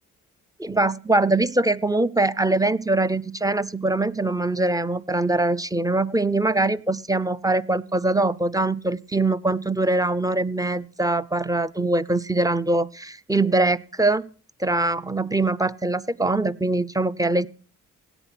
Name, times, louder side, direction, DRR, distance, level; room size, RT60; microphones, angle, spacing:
voice 1, 0.6-14.3 14.6-17.5, right 2 dB, 10° right, 15 dB, 0.6 m, -23 dB
17.0 x 10.0 x 5.9 m, 0.39 s
cardioid pair, 60°, 34 cm